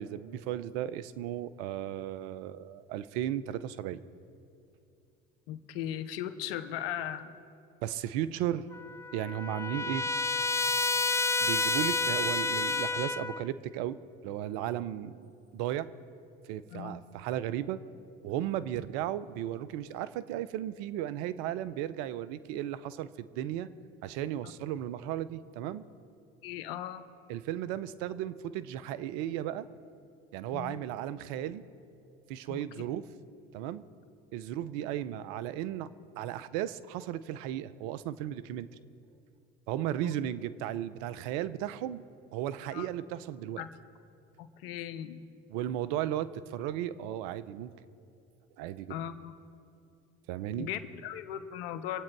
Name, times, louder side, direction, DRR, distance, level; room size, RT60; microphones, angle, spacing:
voice 1, 0.0-4.0 7.8-8.7 9.1-10.0 11.4-14.0 14.2-15.9 16.5-17.8 18.2-23.7 24.0-25.8 27.3-29.7 30.3-31.6 32.3-33.0 33.5-33.8 34.3-35.9 36.2-38.7 39.7-42.0 42.3-43.7 45.5-47.7 48.6-49.0 50.3-50.7, right 12 dB, 70° right, 16 dB, 0.7 m, -35 dB
voice 2, 5.5-7.3 16.7-17.0 26.4-27.0 30.5-30.8 32.5-32.6 40.0-40.1 42.7-42.9 43.6-43.7 44.4-45.3 48.9-49.3 50.6-52.0, left 10 dB, 80° left, 12 dB, 0.9 m, -38 dB
Trumpet, 8.7-13.4, left 3 dB, 10° left, 0.4 m, -30 dB
25.0 x 8.6 x 4.7 m, 2.6 s
hypercardioid pair, 70°, 29 cm